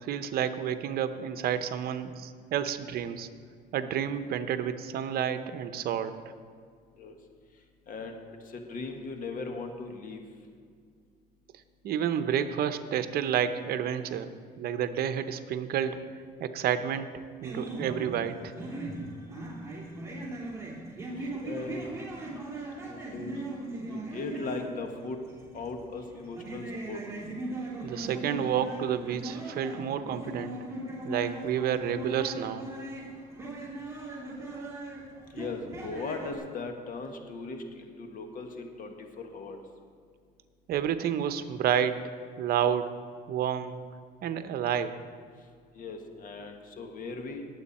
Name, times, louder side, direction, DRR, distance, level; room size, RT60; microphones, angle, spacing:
voice 1, 0.0-3.3 3.7-6.1 11.8-14.3 14.6-16.0 16.4-17.1 17.4-18.5 27.8-30.5 31.0-32.6 40.7-42.0 42.4-42.9 43.3-43.8 44.2-44.9, right 9 dB, 65° right, 10 dB, 0.8 m, -30 dB
voice 2, 7.9-8.2 8.4-10.2 21.2-21.9 22.8-23.4 23.9-25.2 25.5-27.0 35.3-39.6 45.7-47.4, left 3 dB, 55° left, 4 dB, 1.7 m, -38 dB
sound 1, 17.4-36.4, right 2 dB, 15° right, 2.8 m, -39 dB
20.0 x 7.9 x 4.3 m, 2.1 s
cardioid pair, 110°, 17 cm